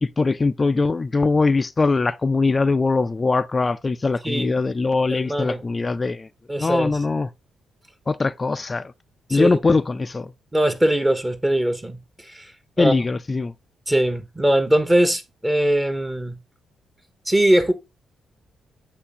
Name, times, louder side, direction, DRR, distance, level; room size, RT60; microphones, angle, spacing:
voice 1, 0.0-6.3 6.6-7.3 8.1-8.8 9.3-10.3 12.8-13.5, left 3 dB, 30° left, 0.3 m, -21 dB
voice 2, 5.1-5.6 6.5-7.0 9.3-9.6 10.5-12.0 12.3-12.4 12.8-12.9 13.9-16.4 17.3-17.7, right 1 dB, 20° right, 1.0 m, -21 dB
8.0 x 2.9 x 4.1 m
hypercardioid pair, 40°, 0 cm